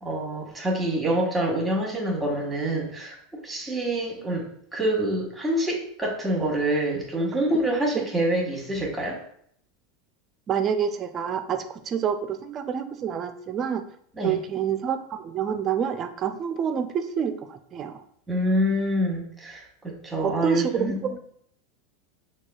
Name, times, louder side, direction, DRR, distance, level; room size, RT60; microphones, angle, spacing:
voice 1, 0.0-3.2 3.4-4.5 4.7-9.2 14.2-14.4 18.3-21.1, right 1 dB, 10° right, -1 dB, 1.3 m, -26 dB
voice 2, 10.5-13.8 14.2-18.0 20.2-21.2, right 8 dB, 40° right, 9 dB, 0.4 m, -28 dB
6.0 x 2.3 x 2.3 m, 0.66 s
hypercardioid pair, 100°, 0 cm